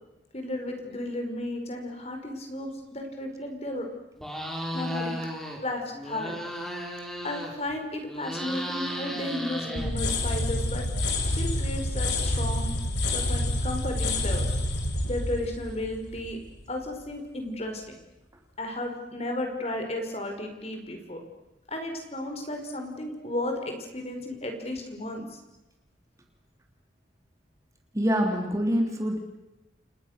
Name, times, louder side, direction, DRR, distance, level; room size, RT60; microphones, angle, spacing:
voice 1, 0.3-3.9 4.7-5.2 5.6-6.4 7.2-10.9 11.3-12.7 13.1-14.5 15.0-16.4 16.7-18.0 18.6-21.2 21.7-25.4, left 1 dB, 35° left, 4 dB, 5.2 m, -34 dB
sound 1, 4.2-5.6 5.9-7.7 8.0-10.3, equal, ahead, 5.3 m, -35 dB
sound 2, 9.7-16.6, left 1 dB, 70° left, 4.8 m, -28 dB
voice 2, 27.9-29.2, equal, 15° right, 2 dB, 3.1 m, -25 dB
29.5 x 29.5 x 6.7 m, 0.95 s
head